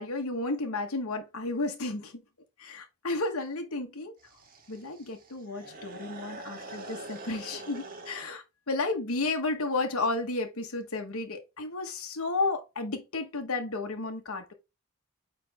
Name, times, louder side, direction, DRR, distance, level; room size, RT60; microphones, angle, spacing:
voice 1, 0.0-2.2 2.6-4.1 4.7-14.5, left 3 dB, 75° left, 1.1 m, -32 dB
sound 1, 4.2-8.3, right 2 dB, 40° right, 1.5 m, -44 dB
8.8 x 3.4 x 3.5 m
head